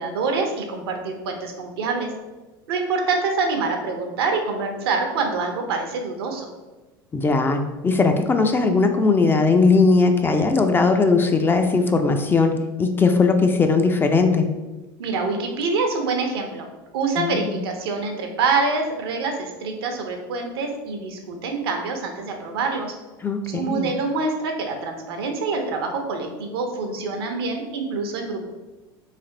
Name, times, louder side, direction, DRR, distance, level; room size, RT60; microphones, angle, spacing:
voice 1, 0.0-2.1 2.7-6.5 15.0-16.7 16.9-23.0 23.5-28.4, right 4 dB, 85° right, 4 dB, 0.7 m, -26 dB
voice 2, 7.1-14.5 17.2-17.6 23.2-23.9, left 4 dB, 15° left, 6 dB, 0.3 m, -19 dB
3.3 x 2.5 x 3.7 m, 1.1 s
supercardioid pair, 100°, 13 cm